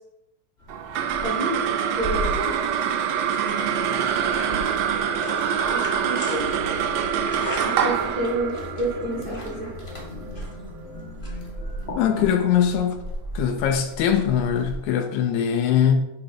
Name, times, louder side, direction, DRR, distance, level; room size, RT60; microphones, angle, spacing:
sound 1, 0.6-13.0, left 1 dB, 50° left, 0.7 m, -38 dB
sound 2, 0.7-11.3, right 8 dB, 85° right, 1.5 m, -25 dB
voice 1, 1.2-1.6 1.9-2.5 5.7-6.5 7.6-9.7, right 1 dB, 45° right, -4 dB, 1.3 m, -29 dB
sound 3, 6.4-14.8, right 1 dB, 30° left, 1.1 m, -38 dB
voice 2, 12.0-13.0 13.3-16.0, left 8 dB, 75° left, 5 dB, 1.9 m, -21 dB
9.2 x 3.3 x 5.1 m, 0.87 s
omnidirectional pair, 3.6 m